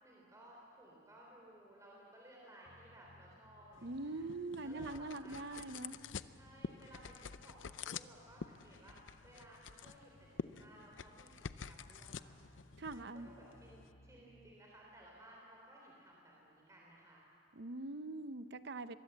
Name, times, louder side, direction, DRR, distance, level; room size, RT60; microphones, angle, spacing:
voice 1, 0.0-4.2 4.6-5.7 6.3-12.4 12.9-17.2, right 1 dB, 15° right, -3 dB, 3.6 m, -59 dB
sound 1, 2.6-14.6, left 1 dB, 50° left, 1.0 m, -65 dB
sound 2, 3.7-13.9, left 5 dB, 90° left, 0.6 m, -49 dB
voice 2, 3.8-6.0 12.8-13.3 17.5-18.9, right 2 dB, 65° right, 12 dB, 0.8 m, -43 dB
23.0 x 22.5 x 8.1 m, 2.7 s
head